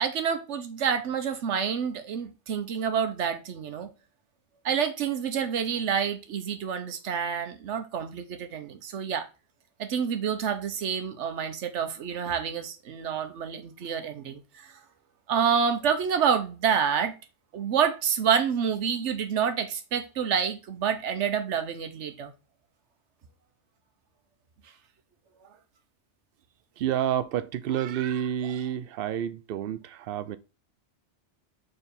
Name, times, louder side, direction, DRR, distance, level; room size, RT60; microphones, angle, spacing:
voice 1, 0.0-3.9 4.6-9.3 9.8-14.8 15.3-17.1 17.5-22.3, right 7 dB, 85° right, 1.1 m, -28 dB
voice 2, 26.8-30.4, right 10 dB, 65° right, 0.7 m, -29 dB
4.6 x 4.0 x 5.1 m
omnidirectional pair, 1.2 m